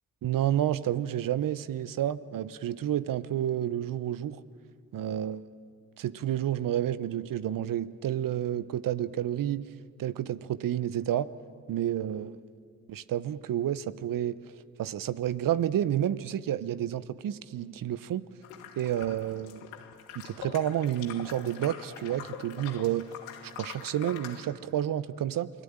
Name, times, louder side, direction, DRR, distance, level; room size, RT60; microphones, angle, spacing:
voice 1, 0.2-4.4 4.9-5.4 6.0-9.7 10.0-11.3 11.7-12.4 12.9-14.4 14.8-18.3 18.8-19.7 20.1-23.1 23.4-25.5, right 11 dB, 55° right, 15 dB, 1.0 m, -30 dB
sound 1, 18.4-24.4, left 9 dB, 90° left, 1.5 m, -44 dB
28.5 x 19.0 x 8.9 m, 2.2 s
hypercardioid pair, 50°, 39 cm